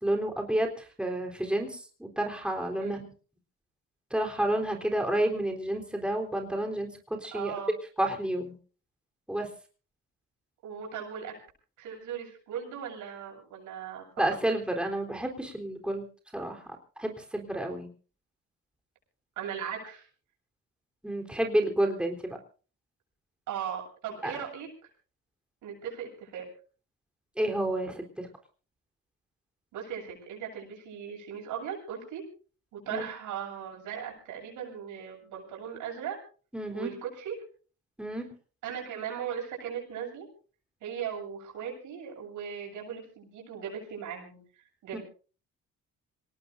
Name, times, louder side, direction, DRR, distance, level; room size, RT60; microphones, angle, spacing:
voice 1, 0.0-3.0 4.1-6.9 7.2-7.5 8.0-8.5 9.3-9.5 14.2-16.0 16.3-16.6 17.0-17.9 21.0-22.4 24.2-24.3 27.4-28.3 32.9-33.0 36.5-36.9 38.0-38.3 44.9-45.0, right 1 dB, 5° right, 2 dB, 3.8 m, -30 dB
voice 2, 7.3-7.7 10.6-11.3 11.8-14.4 19.4-20.0 23.5-24.7 25.6-26.5 29.7-32.2 32.7-36.2 36.7-37.4 38.6-40.3 40.8-45.0, right 8 dB, 90° right, 0 dB, 7.8 m, -38 dB
27.0 x 18.5 x 2.6 m, 0.39 s
cardioid pair, 90°, 30 cm